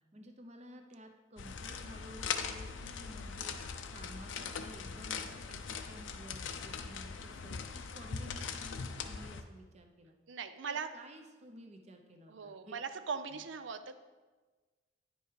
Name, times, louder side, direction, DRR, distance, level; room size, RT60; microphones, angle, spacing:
voice 1, 0.1-3.6 3.9-10.2 10.6-12.8 13.3-13.4, equal, 35° right, 4 dB, 0.8 m, -53 dB
sound 1, 1.4-9.4, left 6 dB, 85° left, 0.6 m, -41 dB
voice 2, 10.3-10.9 12.3-14.0, right 5 dB, 75° right, 10 dB, 0.5 m, -40 dB
9.8 x 5.4 x 4.7 m, 1.3 s
head